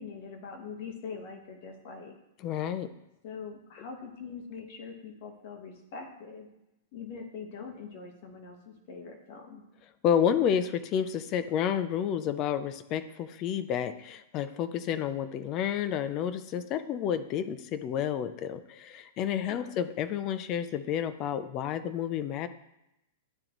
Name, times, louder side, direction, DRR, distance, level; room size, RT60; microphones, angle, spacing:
voice 1, 0.0-2.2 3.2-6.5 6.9-9.6 19.5-19.8, left 5 dB, 45° left, 2 dB, 1.3 m, -43 dB
voice 2, 2.4-2.9 10.0-22.5, left 9 dB, 30° left, 12 dB, 0.5 m, -30 dB
11.5 x 3.8 x 3.0 m, 0.89 s
supercardioid pair, 160°, 0 cm